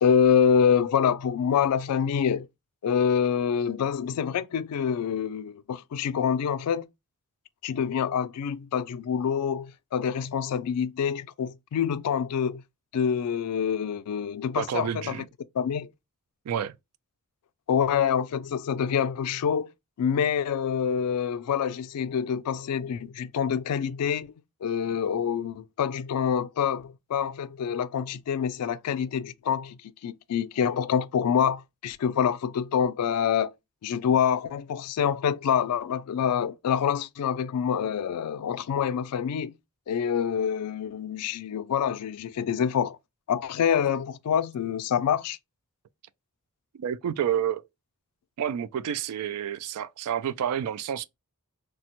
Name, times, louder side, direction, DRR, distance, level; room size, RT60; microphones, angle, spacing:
voice 1, 0.0-2.5 2.8-6.8 7.6-12.6 12.9-15.2 15.5-15.9 17.7-19.7 20.0-24.3 24.6-33.5 33.8-39.5 39.9-43.0 43.3-45.4, left 7 dB, 90° left, 0.3 m, -26 dB
voice 2, 14.6-15.3 16.5-16.8 46.7-47.6 48.4-51.0, right 9 dB, 80° right, 0.3 m, -29 dB
3.3 x 2.1 x 2.9 m
head